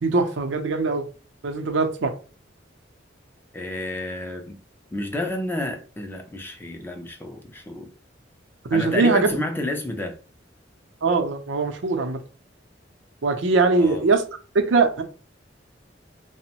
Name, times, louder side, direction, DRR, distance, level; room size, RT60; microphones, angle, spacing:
voice 1, 0.0-1.0 1.4-2.1 8.7-9.3 11.0-12.2 13.2-14.2 14.5-15.0, right 3 dB, 80° right, 0.5 m, -21 dB
voice 2, 3.5-4.6 4.9-7.9 8.7-10.2 13.8-14.0, left 1 dB, 10° left, 0.4 m, -30 dB
2.9 x 2.0 x 2.8 m
head